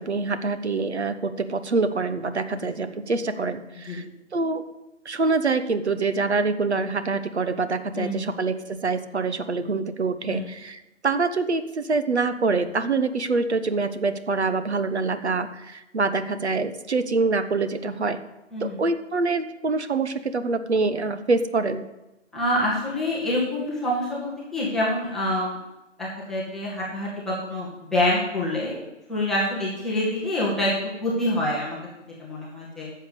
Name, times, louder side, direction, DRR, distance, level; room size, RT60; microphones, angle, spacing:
voice 1, 0.0-4.0 4.3-4.6 5.0-8.5 8.8-18.2 18.6-21.9, right 3 dB, 65° right, 11 dB, 1.1 m, -25 dB
voice 2, 7.9-8.3 10.3-10.5 18.5-18.8 22.3-25.6 26.0-28.8 29.1-30.7 31.0-31.8 32.2-32.9, left 1 dB, ahead, -8 dB, 0.8 m, -26 dB
10.5 x 6.7 x 8.2 m, 0.98 s
figure-of-eight pair, 145°, 37 cm